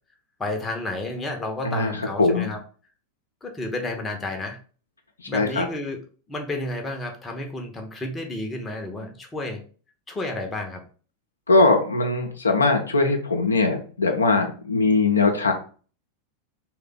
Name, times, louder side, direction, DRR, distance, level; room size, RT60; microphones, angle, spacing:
voice 1, 0.4-2.6 3.4-4.6 5.3-6.0 6.3-9.6 10.1-10.8, left 2 dB, 15° left, 3 dB, 0.7 m, -31 dB
voice 2, 1.6-2.5 5.3-5.7 11.5-15.5, left 3 dB, 75° left, 4 dB, 0.5 m, -21 dB
3.2 x 2.2 x 3.7 m, 0.39 s
figure-of-eight pair, 90°, 0 cm